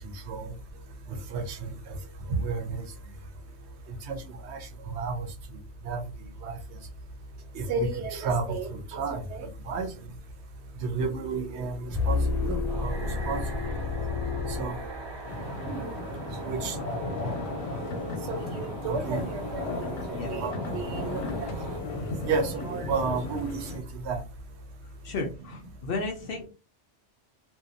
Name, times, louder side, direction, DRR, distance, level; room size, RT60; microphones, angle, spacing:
voice 1, 1.3-1.7 2.3-2.8 4.1-4.2 4.5-4.6 5.0-5.3 5.9-6.0 6.4-6.6 7.5-9.9 10.8-13.0 13.2-13.4 14.6-14.8 15.6-15.9 16.4-16.7 18.3-19.6 20.3-21.5 22.2-24.2, right 4 dB, 70° right, 8 dB, 0.8 m, -31 dB
sound 1, 11.9-15.4, left 4 dB, 35° left, 0.9 m, -30 dB
sound 2, 12.7-21.8, right 4 dB, 35° right, 0.5 m, -41 dB
sound 3, 15.2-23.8, left 3 dB, 80° left, 1.0 m, -35 dB
voice 2, 17.9-18.4 20.1-20.4 25.0-26.5, left 3 dB, 60° left, 3 dB, 0.6 m, -35 dB
2.7 x 2.2 x 2.4 m, 0.31 s
omnidirectional pair, 1.2 m